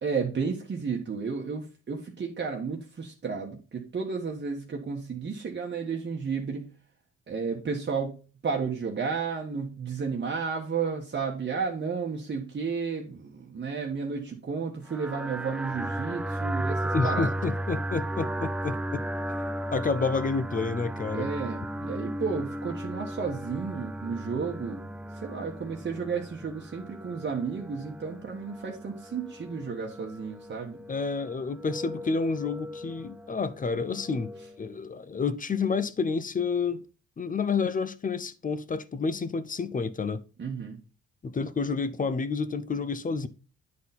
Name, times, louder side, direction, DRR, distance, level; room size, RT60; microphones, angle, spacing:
voice 1, 0.0-6.7 7.3-17.3 21.1-30.8 40.4-40.8, right 5 dB, 35° right, 1.3 m, -32 dB
sound 1, 14.9-34.6, right 1 dB, 5° right, 0.3 m, -35 dB
voice 2, 16.9-19.4 19.7-21.3 30.9-34.3 34.6-36.8 37.2-40.2 41.2-43.3, left 4 dB, 25° left, 0.7 m, -29 dB
9.4 x 4.1 x 4.2 m
cardioid pair, 90°, 30 cm